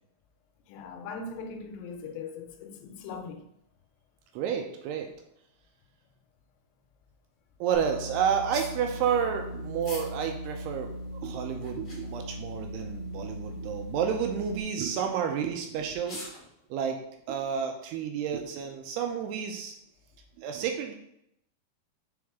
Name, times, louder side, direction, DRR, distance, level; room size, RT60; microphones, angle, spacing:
voice 1, 0.7-3.4, left 4 dB, 85° left, 2.8 m, -40 dB
voice 2, 4.3-5.1 7.6-10.9 11.2-16.3 16.7-17.0 17.3-19.8 20.4-20.9, right 7 dB, 80° right, 2.5 m, -30 dB
sound 1, 7.7-14.6, equal, 45° right, 0.8 m, -39 dB
sound 2, 8.5-8.8 9.8-10.1 10.6-10.7 11.5-12.2 12.9-13.2 13.5-13.6 14.3-14.5 15.4-15.5 15.9-16.4, left 1 dB, 60° left, 0.5 m, -43 dB
6.4 x 4.3 x 3.5 m
omnidirectional pair, 5.0 m